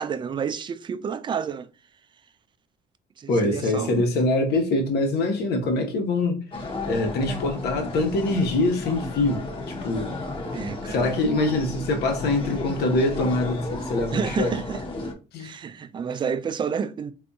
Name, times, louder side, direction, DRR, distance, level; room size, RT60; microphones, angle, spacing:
voice 1, 0.0-1.7 3.2-4.0 10.5-11.2 14.1-14.8 15.4-17.1, right 6 dB, 30° right, 0.4 m, -30 dB
voice 2, 3.3-6.4 6.9-10.1 10.9-14.5 15.3-15.5, left 2 dB, 70° left, 1.1 m, -24 dB
sound 1, 6.5-15.1, left 2 dB, 30° left, 0.9 m, -33 dB
3.5 x 2.6 x 2.6 m
cardioid pair, 110°, 17 cm